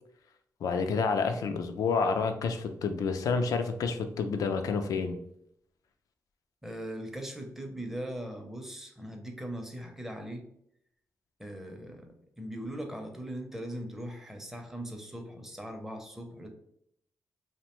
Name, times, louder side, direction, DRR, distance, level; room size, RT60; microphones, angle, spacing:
voice 1, 0.6-5.2, left 5 dB, 80° left, 7 dB, 0.3 m, -29 dB
voice 2, 6.6-10.5 11.4-16.5, equal, 5° right, 3 dB, 0.5 m, -40 dB
2.7 x 2.1 x 2.9 m, 0.72 s
cardioid pair, 85°, 6 cm